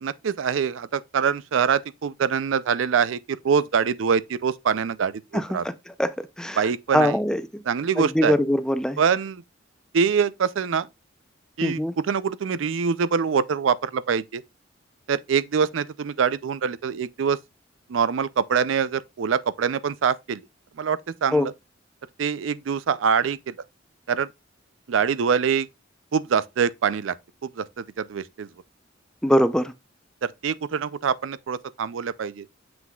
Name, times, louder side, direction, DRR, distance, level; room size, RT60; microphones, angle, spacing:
voice 1, 0.0-5.6 6.6-7.2 7.7-8.4 9.0-9.4 9.9-10.9 11.6-14.4 15.1-17.4 17.9-20.4 20.8-21.5 22.2-23.5 24.1-24.3 24.9-25.7 26.1-27.2 27.4-28.5 30.2-32.5, right 6 dB, 85° right, 0.4 m, -24 dB
voice 2, 5.3-5.7 6.0-6.6 6.9-7.4 8.0-9.0 11.6-11.9 21.3-21.5 29.2-29.7, equal, 5° left, 0.5 m, -22 dB
7.4 x 6.0 x 2.3 m
head